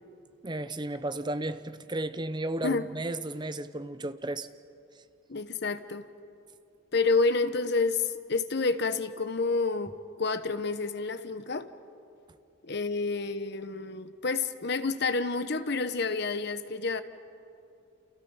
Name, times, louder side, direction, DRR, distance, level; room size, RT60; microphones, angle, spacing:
voice 1, 0.4-4.5, right 2 dB, 20° right, 12 dB, 0.7 m, -34 dB
voice 2, 5.3-6.1 6.9-11.7 12.6-17.0, left 4 dB, 55° left, 10 dB, 1.1 m, -29 dB
29.5 x 29.0 x 5.7 m, 2.6 s
head